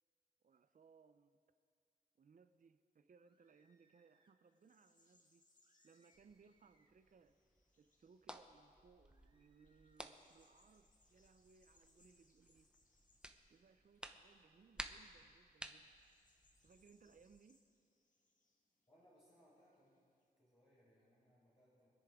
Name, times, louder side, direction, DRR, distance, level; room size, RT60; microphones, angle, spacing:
voice 1, 0.4-1.4 2.2-5.4 5.8-7.4 7.8-12.7 13.5-15.9 16.6-17.6, right 5 dB, 55° right, 11 dB, 0.6 m, -67 dB
sound 1, 3.2-4.4 5.6-7.1 9.0-10.2, right 1 dB, 30° right, 1.3 m, -80 dB
sound 2, 4.5-8.9 9.3-20.3, left 2 dB, 50° left, 1.6 m, -78 dB
sound 3, 6.1-17.4, right 1 dB, 5° right, 0.7 m, -57 dB
voice 2, 18.9-19.9 20.3-21.9, equal, 35° left, -9 dB, 4.6 m, -70 dB
25.5 x 10.0 x 3.7 m, 2.3 s
wide cardioid pair, 115°, 16 cm